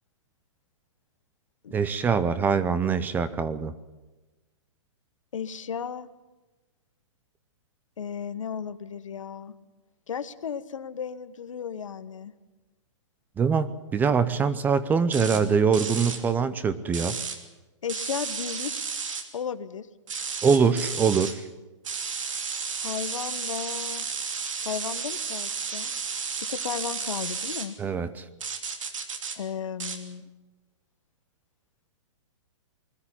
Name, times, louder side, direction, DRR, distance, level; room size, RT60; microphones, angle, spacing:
voice 1, 1.7-3.7 13.4-17.2 20.4-21.4 27.8-28.2, right 6 dB, 10° right, 14 dB, 0.7 m, -23 dB
voice 2, 5.3-6.1 8.0-9.5 10.1-12.3 17.8-18.7 19.3-19.9 22.8-24.1 24.6-25.9 26.5-27.8 29.4-30.3, left 7 dB, 90° left, 11 dB, 1.3 m, -34 dB
sound 1, 15.1-15.4 15.7-16.2 16.9-17.4 17.9-19.2 20.1-21.3 21.8-27.7 28.4-29.4 29.8-30.0, right 5 dB, 85° right, 2.9 m, -32 dB
21.0 x 13.5 x 9.9 m, 1.1 s
hypercardioid pair, 150°, 16 cm